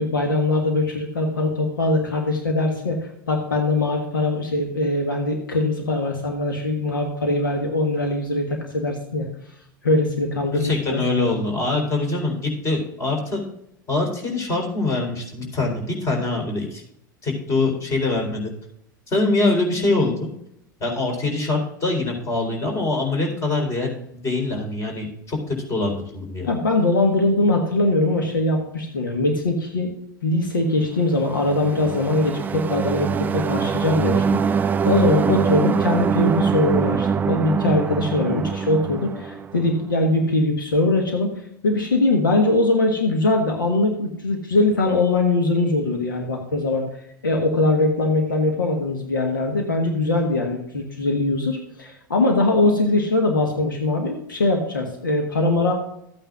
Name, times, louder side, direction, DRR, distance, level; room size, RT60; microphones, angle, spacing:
voice 1, 0.0-9.3 9.8-11.0 26.4-29.9 30.2-46.9 47.2-55.7, left 2 dB, 75° left, 2 dB, 1.4 m, -21 dB
voice 2, 10.5-13.4 13.9-16.8 17.2-18.5 19.1-20.3 20.8-26.5, left 2 dB, 25° left, 1 dB, 4.0 m, -24 dB
sound 1, 31.2-39.9, right 6 dB, 15° right, 0.3 m, -23 dB
14.5 x 9.0 x 2.5 m, 0.75 s
figure-of-eight pair, 85°, 11 cm